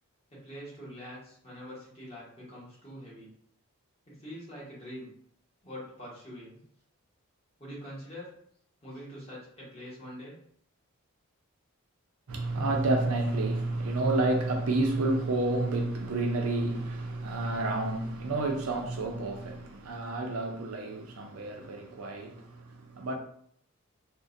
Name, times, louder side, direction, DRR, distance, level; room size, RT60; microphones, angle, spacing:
voice 1, 0.3-3.3 4.1-5.1 5.6-6.6 7.6-8.4 8.8-10.4, equal, 25° left, 1.1 m, -44 dB
voice 2, 12.3-23.2, right 2 dB, 75° right, 0.5 m, -30 dB
2.5 x 2.1 x 2.5 m
head